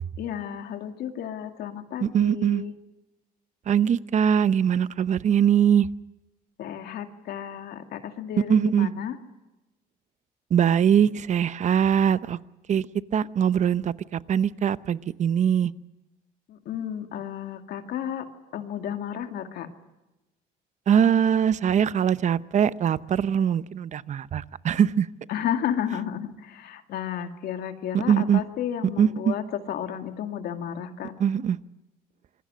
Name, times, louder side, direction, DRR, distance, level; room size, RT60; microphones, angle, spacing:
voice 1, 0.2-2.7 6.6-9.2 16.5-18.3 18.5-19.7 25.3-29.4 29.7-31.1, left 9 dB, 70° left, 6 dB, 2.3 m, -32 dB
voice 2, 2.0-2.6 3.7-5.9 8.5-8.9 10.5-12.4 12.7-12.9 13.1-15.7 20.9-25.1 27.9-28.4 29.0-29.3 31.2-31.6, right 8 dB, 45° right, 15 dB, 0.8 m, -22 dB
26.5 x 22.0 x 6.3 m, 1.0 s
cardioid pair, 110°, 17 cm